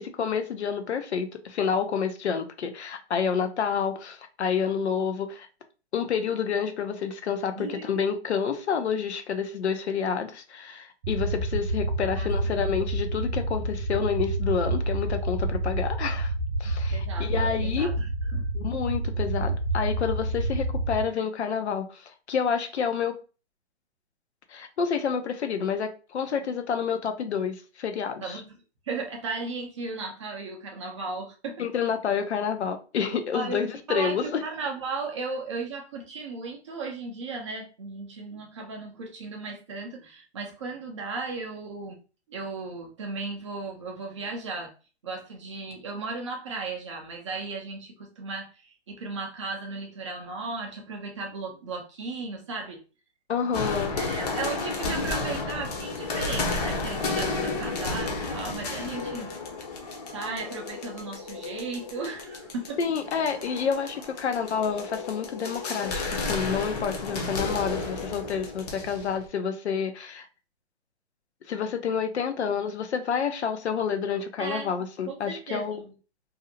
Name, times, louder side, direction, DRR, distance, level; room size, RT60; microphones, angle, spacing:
voice 1, 0.0-5.5 5.9-16.3 16.6-17.9 18.5-23.2 24.5-28.4 31.6-34.2 53.3-54.0 62.8-70.3 71.5-75.8, left 7 dB, 75° left, 0.6 m, -29 dB
voice 2, 7.6-7.9 12.1-12.3 16.6-18.5 28.2-28.5 28.8-31.6 33.3-33.6 33.9-42.0 42.3-44.7 45.0-52.8 54.0-59.3 60.1-62.8 74.4-74.7 75.1-75.9, right 3 dB, 30° right, 0.4 m, -36 dB
sound 1, 11.0-21.0, right 1 dB, 85° right, 0.5 m, -28 dB
sound 2, 53.5-69.3, left 3 dB, 40° left, 0.6 m, -32 dB
2.6 x 2.0 x 2.7 m
hypercardioid pair, 145°, 33 cm